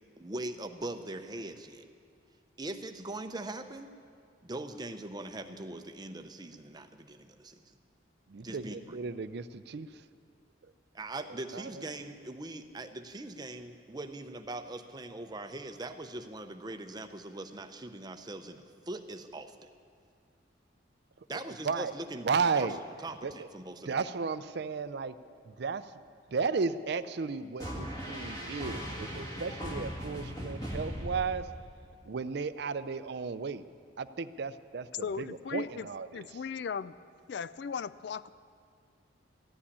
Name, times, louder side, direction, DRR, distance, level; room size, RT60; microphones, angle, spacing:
voice 1, 0.2-1.9 2.6-3.9 4.4-7.7 8.4-9.0 10.9-19.7 21.3-22.3 22.6-22.7 23.0-23.9, right 2 dB, 20° right, 7 dB, 0.7 m, -41 dB
voice 2, 8.3-10.0 10.6-10.7 11.3-11.8 21.3-21.9 22.2-22.8 23.2-23.5 23.9-25.2 25.4-26.0 26.3-31.5 32.0-33.6 34.0-36.4, right 5 dB, 60° right, 13 dB, 0.5 m, -34 dB
sound 1, 27.6-31.9, equal, 20° left, 1.9 m, -39 dB
voice 3, 35.0-35.9 36.1-36.9 37.3-38.3, left 6 dB, 60° left, 16 dB, 0.3 m, -37 dB
14.5 x 8.5 x 9.9 m, 2.2 s
head